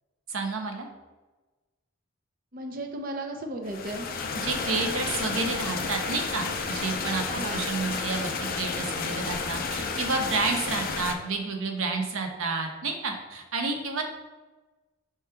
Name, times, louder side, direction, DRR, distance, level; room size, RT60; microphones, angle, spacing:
voice 1, 0.3-0.9 4.3-7.2 7.5-14.0, right 3 dB, 90° right, 4 dB, 0.7 m, -30 dB
voice 2, 2.5-4.1 7.3-7.6, right 1 dB, 45° right, 3 dB, 0.5 m, -35 dB
sound 1, 3.6-11.1, left 4 dB, 45° left, 0.4 m, -31 dB
4.7 x 3.0 x 3.3 m, 1.2 s
head